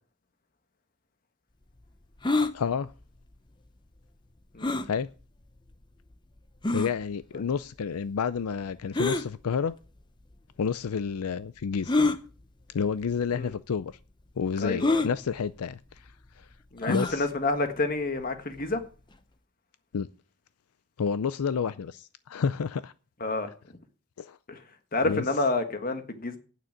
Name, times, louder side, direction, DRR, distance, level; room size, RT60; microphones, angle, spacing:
sound 1, 2.2-2.5 4.6-4.9 5.7-5.8 6.6-6.9 8.9-9.3 10.3-10.4 11.9-12.2 13.1-13.3 13.5-13.6 14.8-15.1 16.8-17.2, left 2 dB, 20° left, 0.7 m, -25 dB
voice 1, 2.5-2.9 4.8-5.1 6.7-9.7 10.6-11.9 12.7-13.9 14.4-16.1 16.4-16.5 16.9-17.3 19.9-20.1 21.0-22.9 24.2-24.4 25.0-25.2, left 6 dB, 80° left, 0.4 m, -30 dB
voice 2, 4.5-4.8 7.3-7.4 13.3-13.5 14.6-15.1 16.7-18.8 23.2-23.5 24.5-24.6 24.9-26.4, left 2 dB, 40° left, 1.5 m, -29 dB
9.2 x 6.9 x 8.9 m
head